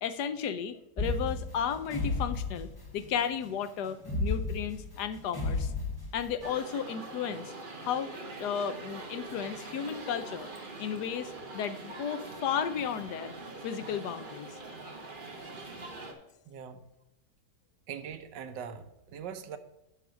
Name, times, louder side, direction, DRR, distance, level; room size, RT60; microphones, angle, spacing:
voice 1, 0.0-5.7 6.1-7.5 7.8-10.5 10.8-13.3 13.6-14.6, left 8 dB, 75° left, 12 dB, 1.2 m, -34 dB
sound 1, 1.0-3.2 4.0-6.5, left 3 dB, 15° left, 1.0 m, -33 dB
sound 2, 6.4-16.1, right 2 dB, 30° right, 1.2 m, -43 dB
sound 3, 7.8-8.3 9.0-9.5 9.8-10.3 11.0-11.4 11.9-12.5, left 2 dB, 50° left, 4.0 m, -51 dB
voice 2, 16.5-16.8 17.9-18.8 19.1-19.6, right 7 dB, 80° right, 9 dB, 1.5 m, -41 dB
7.9 x 5.9 x 6.2 m, 0.97 s
omnidirectional pair, 1.9 m